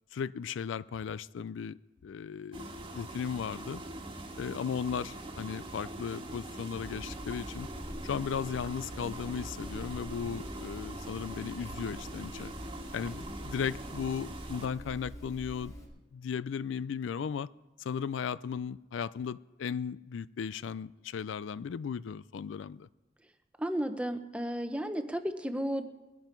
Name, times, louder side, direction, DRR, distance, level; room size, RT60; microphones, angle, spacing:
voice 1, 0.1-1.8 2.0-3.8 4.4-7.7 8.0-12.5 12.9-15.7 16.1-17.5 17.8-22.9, left 7 dB, 80° left, 18 dB, 0.4 m, -36 dB
sound 1, 2.5-14.7, right 1 dB, 30° right, 1.4 m, -43 dB
sound 2, 6.8-15.9, equal, 20° left, 3.0 m, -45 dB
voice 2, 23.6-25.8, equal, 5° right, 8 dB, 0.8 m, -33 dB
21.0 x 11.0 x 4.5 m, 1.1 s
head